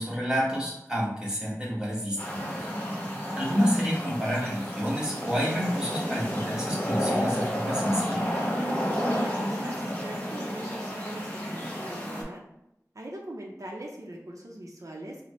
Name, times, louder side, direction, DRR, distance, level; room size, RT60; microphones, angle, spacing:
voice 1, 0.0-2.5 3.4-8.3, equal, 10° right, -6 dB, 1.2 m, -29 dB
sound 1, 2.2-12.2, equal, 25° left, 1.1 m, -31 dB
voice 2, 9.0-12.4 12.9-15.2, right 1 dB, 55° right, -1 dB, 0.6 m, -41 dB
4.1 x 2.1 x 3.0 m, 0.82 s
wide cardioid pair, 40°, 6 cm